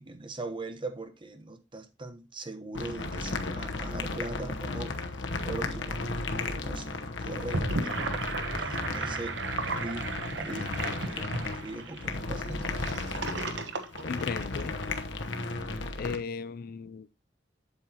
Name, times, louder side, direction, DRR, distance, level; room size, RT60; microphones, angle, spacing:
voice 1, 0.0-5.0 5.4-6.9 7.2-8.0 8.2-12.7, right 2 dB, 25° right, 1.1 m, -41 dB
sound 1, 2.7-16.2, left 3 dB, 85° left, 1.0 m, -35 dB
Gurgling / Sink (filling or washing), 7.3-14.9, right 3 dB, 70° right, 1.1 m, -35 dB
voice 2, 14.1-14.8 16.0-17.1, left 5 dB, 55° left, 0.4 m, -36 dB
8.2 x 7.7 x 2.9 m
head